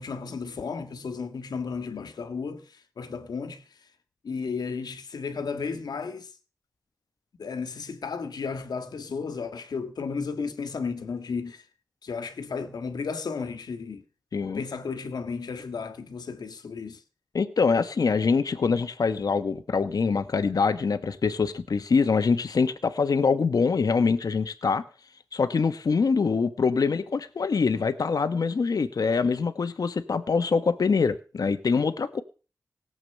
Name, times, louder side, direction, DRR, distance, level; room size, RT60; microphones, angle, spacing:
voice 1, 0.0-3.8 4.2-6.3 7.4-11.6 12.0-14.0 14.5-17.0, left 5 dB, 85° left, 1.7 m, -34 dB
voice 2, 14.3-14.6 17.3-24.8 25.3-32.2, left 5 dB, 65° left, 1.2 m, -24 dB
18.0 x 8.0 x 6.7 m
cardioid pair, 70°, 7 cm